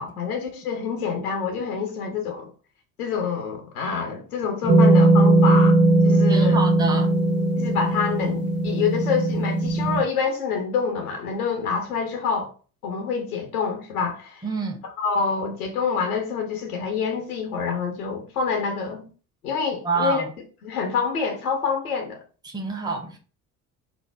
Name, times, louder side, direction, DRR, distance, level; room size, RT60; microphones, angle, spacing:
voice 1, 0.0-2.5 3.0-5.8 6.0-6.6 7.6-12.5 12.8-14.4 15.0-19.1 19.4-20.2 20.6-22.2, left 5 dB, 85° left, 0.6 m, -27 dB
sound 1, 4.7-10.0, right 2 dB, 35° right, 0.9 m, -18 dB
voice 2, 6.3-7.1 14.4-14.8 19.8-20.3 22.4-23.2, right 4 dB, 10° right, 0.6 m, -27 dB
2.6 x 2.0 x 3.2 m
figure-of-eight pair, 55°, 43 cm